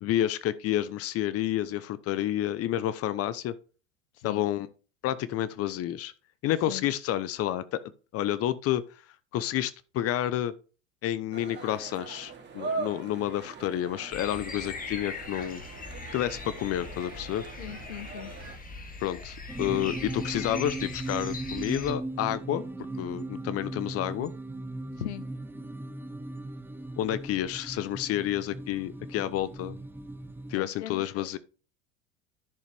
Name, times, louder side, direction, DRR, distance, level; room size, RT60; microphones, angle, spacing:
voice 1, 0.0-3.5 4.2-4.7 5.0-6.1 6.4-7.8 8.1-9.0 9.3-10.5 11.0-15.6 16.1-17.4 19.0-22.6 22.9-24.3 27.0-29.8 30.5-31.4, left 12 dB, 45° left, 0.8 m, -30 dB
India outdoor crowd, 11.3-18.6, right 4 dB, 30° right, 2.6 m, -41 dB
sound 1, 14.1-21.9, left 4 dB, 25° left, 1.9 m, -40 dB
voice 2, 17.6-18.3 25.0-25.2 30.5-31.3, left 12 dB, 80° left, 0.7 m, -39 dB
sound 2, 19.5-30.6, right 2 dB, 5° right, 1.0 m, -38 dB
10.5 x 6.6 x 3.3 m
hypercardioid pair, 85°, 34 cm